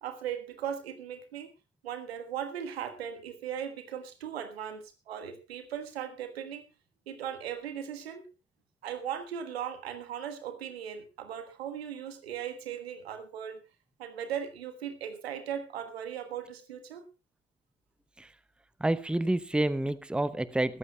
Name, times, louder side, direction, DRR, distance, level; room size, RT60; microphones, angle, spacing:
voice 1, 0.0-1.5 1.8-6.6 7.1-8.3 8.8-13.6 14.0-17.1, right 9 dB, 85° right, 1.5 m, -38 dB
voice 2, 18.8-20.8, right 1 dB, 5° right, 0.8 m, -28 dB
21.0 x 14.5 x 2.3 m
hypercardioid pair, 50°, 30 cm